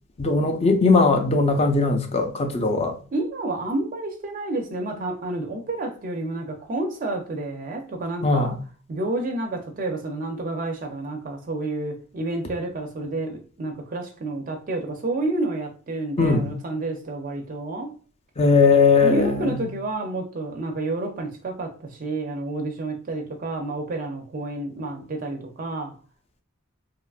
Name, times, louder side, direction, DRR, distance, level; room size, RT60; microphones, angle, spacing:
voice 1, 0.2-3.0 8.2-8.5 16.2-16.5 18.4-19.6, left 4 dB, 30° left, 0.4 m, -19 dB
voice 2, 3.1-8.5 8.9-17.9 19.0-25.9, right 2 dB, 40° right, 0.4 m, -29 dB
2.8 x 2.3 x 2.3 m
head